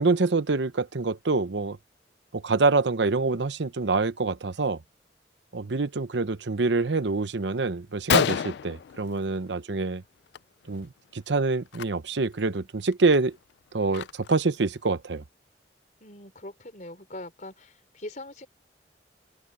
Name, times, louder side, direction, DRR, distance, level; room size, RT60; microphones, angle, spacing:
voice 1, 0.0-1.8 2.3-4.8 5.5-10.0 10.7-13.4 13.7-15.2, right 3 dB, 80° right, 0.8 m, -26 dB
Gunshot gunfire, 7.4-7.5 7.8-7.9 8.1-9.7 10.0-10.4 10.6-10.9 11.7-11.8 12.4-12.5 12.9-14.5, left 8 dB, 70° left, 0.3 m, -29 dB
voice 2, 16.0-18.5, left 1 dB, 45° left, 4.4 m, -42 dB
open air
head